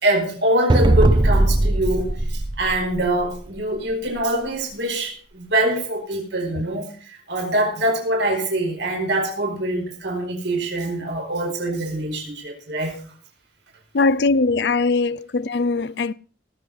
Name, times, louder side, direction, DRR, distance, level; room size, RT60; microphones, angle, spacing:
voice 1, 0.0-13.0, right 1 dB, 80° right, 4.7 m, -24 dB
sound 1, 0.7-3.4, right 1 dB, 25° right, 0.6 m, -19 dB
voice 2, 13.9-16.1, left 3 dB, 70° left, 0.6 m, -21 dB
18.5 x 7.5 x 5.3 m
head